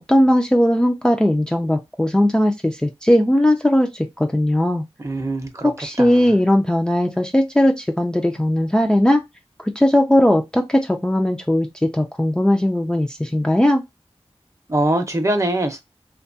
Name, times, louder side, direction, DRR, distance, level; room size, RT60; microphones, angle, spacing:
voice 1, 0.1-4.8 5.6-9.2 9.6-11.7 11.9-13.8, left 1 dB, 10° left, 0.3 m, -18 dB
voice 2, 5.0-6.3 14.7-15.8, right 1 dB, 30° right, 0.6 m, -23 dB
2.8 x 2.2 x 2.6 m
wide cardioid pair, 70°, 11 cm